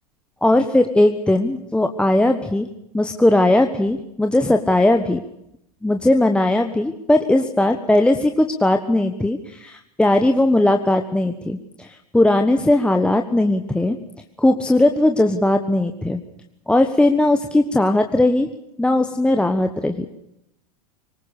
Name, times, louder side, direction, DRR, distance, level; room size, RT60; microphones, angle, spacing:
voice 1, 0.4-2.7 2.9-5.2 5.8-11.9 12.1-14.0 14.4-16.2 16.7-18.5 18.8-20.1, left 1 dB, 5° left, 6 dB, 1.3 m, -18 dB
23.5 x 20.5 x 6.6 m, 0.81 s
hypercardioid pair, 95°, 20 cm